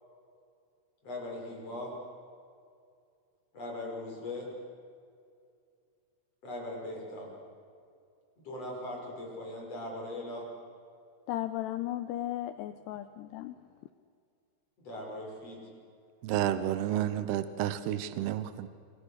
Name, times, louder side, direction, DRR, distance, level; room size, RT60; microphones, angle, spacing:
voice 1, 1.0-2.0 3.5-4.5 6.4-7.3 8.4-10.5 14.8-15.6, left 1 dB, 30° left, -1 dB, 6.9 m, -39 dB
voice 2, 11.3-13.6, left 13 dB, 85° left, 10 dB, 2.4 m, -35 dB
voice 3, 16.2-18.7, right 11 dB, 75° right, 12 dB, 2.5 m, -31 dB
28.0 x 26.0 x 6.6 m, 2.3 s
omnidirectional pair, 5.8 m